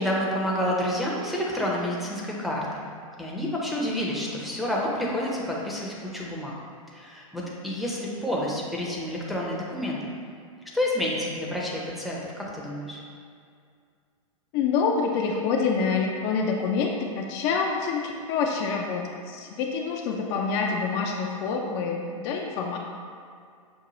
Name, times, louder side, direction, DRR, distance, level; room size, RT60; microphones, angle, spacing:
voice 1, 0.0-2.8 3.2-6.5 6.9-10.1 10.7-13.0, left 1 dB, ahead, -5 dB, 0.6 m, -29 dB
voice 2, 14.5-22.8, left 5 dB, 45° left, 1 dB, 0.4 m, -27 dB
6.1 x 2.2 x 2.9 m, 2.2 s
hypercardioid pair, 115°, 18 cm